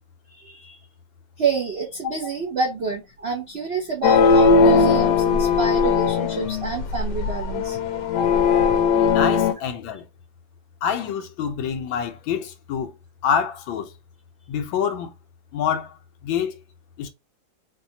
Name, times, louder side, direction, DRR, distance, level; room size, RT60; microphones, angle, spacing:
voice 1, 0.3-0.8 1.4-7.8, right 4 dB, 70° right, 0.6 m, -28 dB
sound 1, 4.0-9.5, left 5 dB, 70° left, 1.1 m, -19 dB
voice 2, 9.1-10.0 10.8-12.9 13.2-13.9 14.5-15.1 15.5-15.9 16.2-16.5 17.0-17.1, left 7 dB, 90° left, 1.5 m, -26 dB
4.4 x 2.3 x 2.7 m
omnidirectional pair, 2.1 m